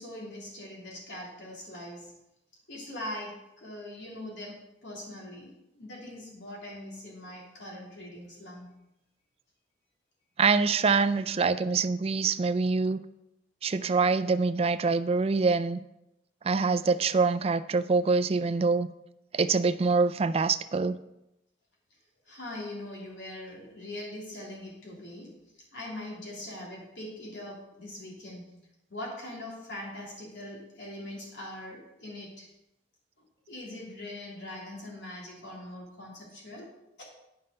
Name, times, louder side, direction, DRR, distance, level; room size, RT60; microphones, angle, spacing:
voice 1, 0.0-2.2 2.7-8.7 22.2-25.4 25.7-28.6 28.9-32.5 33.2-36.7, left 1 dB, 90° left, -4 dB, 3.3 m, -42 dB
voice 2, 10.4-13.0 13.6-15.8 16.4-18.9 19.3-21.0, right 4 dB, 35° right, 11 dB, 0.4 m, -25 dB
9.6 x 5.6 x 5.1 m, 0.88 s
head